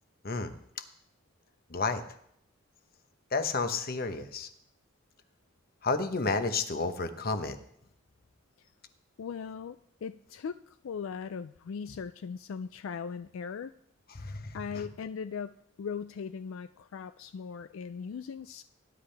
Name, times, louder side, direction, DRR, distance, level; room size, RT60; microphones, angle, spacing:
voice 1, 1.7-2.0 3.3-4.5 5.8-7.6 14.1-14.9, left 3 dB, 45° left, 9 dB, 0.9 m, -31 dB
voice 2, 9.2-13.7 14.5-18.6, left 6 dB, 75° left, 12 dB, 0.4 m, -39 dB
18.0 x 10.5 x 3.4 m, 0.71 s
head